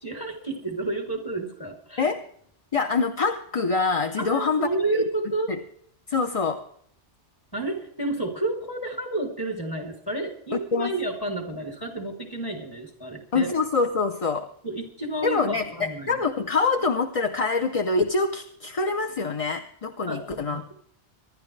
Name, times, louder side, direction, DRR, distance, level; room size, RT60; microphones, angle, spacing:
voice 1, 0.0-2.1 4.2-5.5 7.5-13.5 14.6-16.2 20.0-20.7, right 2 dB, 20° left, 2 dB, 3.1 m, -30 dB
voice 2, 2.7-5.0 5.5-5.6 6.1-6.6 10.5-11.0 13.3-14.5 15.2-20.7, left 4 dB, 35° left, 5 dB, 0.7 m, -25 dB
25.0 x 11.5 x 3.3 m, 0.66 s
omnidirectional pair, 1.1 m